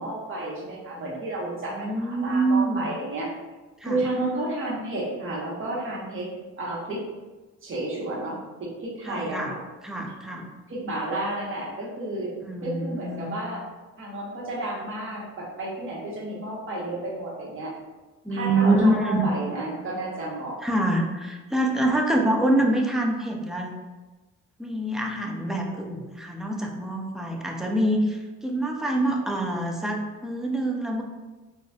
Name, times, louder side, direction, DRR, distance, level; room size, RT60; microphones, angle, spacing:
voice 1, 0.0-3.3 3.8-6.3 6.6-7.0 7.6-9.6 10.7-12.3 12.6-13.6 14.0-17.7 18.3-20.6, right 2 dB, 45° right, -4 dB, 1.1 m, -31 dB
voice 2, 1.7-2.9 3.8-4.0 9.0-9.6 9.8-10.5 12.4-13.3 18.2-19.3 20.6-23.7 24.6-31.0, right 1 dB, ahead, 0 dB, 0.4 m, -25 dB
4.0 x 2.4 x 2.3 m, 1.2 s
cardioid pair, 90°, 30 cm